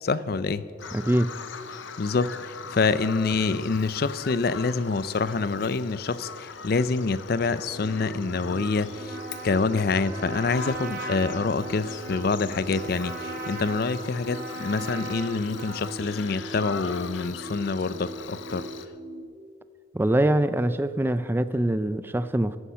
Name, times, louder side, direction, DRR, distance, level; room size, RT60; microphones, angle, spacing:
voice 1, 0.0-0.6 2.0-9.2 9.4-18.6, left 4 dB, 50° left, 16 dB, 0.5 m, -26 dB
Bird vocalization bird call bird song, 0.8-18.9, left 6 dB, 80° left, 0.7 m, -41 dB
voice 2, 0.9-1.3 19.9-22.6, right 1 dB, 10° right, 13 dB, 0.4 m, -24 dB
sound 1, 7.7-19.2, right 1 dB, 30° right, 1.5 m, -41 dB
Trumpet, 8.9-16.1, right 3 dB, 50° right, 1.7 m, -39 dB
14.5 x 9.9 x 5.7 m, 2.1 s
head